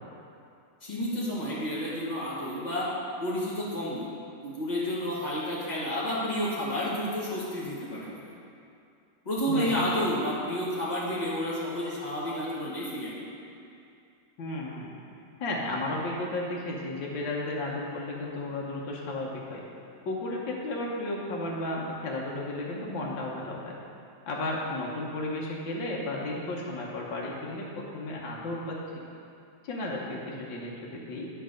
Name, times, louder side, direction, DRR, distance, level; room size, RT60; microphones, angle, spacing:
voice 1, 0.8-2.9 3.2-4.1 4.4-8.3 9.3-13.1, equal, 25° left, -7 dB, 1.9 m, -30 dB
voice 2, 9.5-9.8 14.4-15.0 15.4-19.6 20.1-23.7 24.3-28.8 29.6-31.3, left 2 dB, 75° left, -3 dB, 1.7 m, -33 dB
9.2 x 4.6 x 6.4 m, 2.6 s
omnidirectional pair, 2.1 m